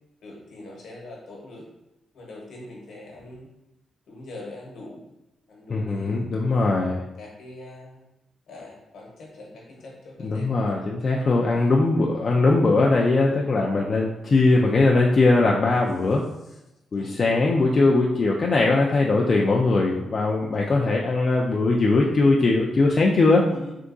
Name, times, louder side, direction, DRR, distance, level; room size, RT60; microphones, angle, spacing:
voice 1, 0.2-1.6 2.1-3.5 4.1-5.0 5.5-6.2 7.2-8.0 8.5-10.8 11.4-11.8 12.2-12.3 14.3-14.7 16.9-17.4 20.6-20.9 23.4-23.8, left 2 dB, 75° left, -2 dB, 1.0 m, -43 dB
voice 2, 5.7-7.0 10.2-16.2 16.9-23.4, left 3 dB, 40° left, -2 dB, 0.4 m, -20 dB
3.5 x 2.8 x 2.6 m, 0.91 s
cardioid pair, 120°, 0 cm